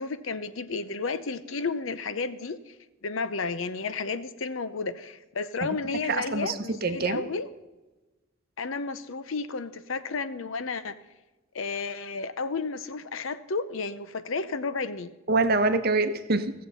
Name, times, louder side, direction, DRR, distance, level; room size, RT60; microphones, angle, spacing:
voice 1, 0.0-2.7 3.0-7.5 8.6-11.0 11.5-15.1, left 4 dB, 70° left, 13 dB, 0.7 m, -32 dB
voice 2, 6.1-7.3 15.3-16.5, right 3 dB, 45° right, 9 dB, 0.8 m, -25 dB
16.5 x 7.4 x 5.5 m, 1.1 s
head